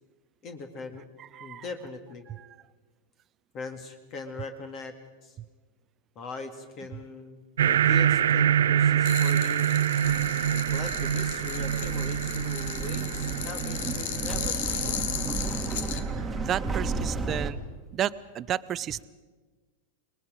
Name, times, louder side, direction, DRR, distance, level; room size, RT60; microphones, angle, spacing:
voice 1, 0.4-1.0 1.4-2.3 3.5-4.9 5.2-5.4 6.2-9.8 10.5-15.0 16.7-16.8, left 3 dB, 35° left, 6 dB, 2.2 m, -40 dB
voice 2, 1.2-1.6 2.3-2.5 16.4-17.6 17.9-19.1, right 10 dB, 30° right, 16 dB, 0.6 m, -32 dB
sound 1, 7.6-16.5, right 9 dB, 65° right, 0.7 m, -26 dB
sound 2, 9.0-16.0, left 9 dB, 60° left, 1.3 m, -36 dB
sound 3, 10.0-17.5, right 3 dB, 10° right, 1.8 m, -34 dB
29.0 x 20.5 x 5.2 m, 1.3 s
figure-of-eight pair, 90°, 0 cm